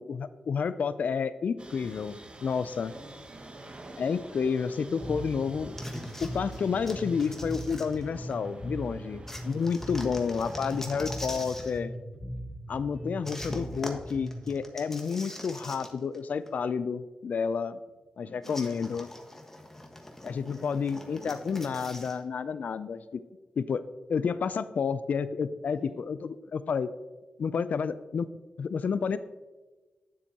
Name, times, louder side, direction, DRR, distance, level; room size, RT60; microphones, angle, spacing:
voice 1, 0.0-2.9 4.0-5.8 6.2-11.9 12.7-17.8 18.2-19.1 20.2-23.2 23.6-23.8 24.1-26.9 27.4-28.3 28.6-29.2, left 6 dB, 65° left, 14 dB, 0.3 m, -30 dB
sound 1, 1.6-10.8, right 2 dB, 35° right, 1.0 m, -49 dB
voice 2, 2.8-4.0 9.1-9.4 18.2-18.5 25.7-26.0, right 1 dB, 70° right, -3 dB, 1.9 m, -53 dB
Bass guitar, 5.0-14.6, equal, 5° right, 2.5 m, -40 dB
sound 2, 5.8-8.5 9.3-11.8 13.2-16.2 16.5-16.6 18.4-22.2, left 1 dB, 15° left, 1.4 m, -43 dB
9.7 x 7.2 x 2.9 m, 1.2 s
cardioid pair, 60°, 3 cm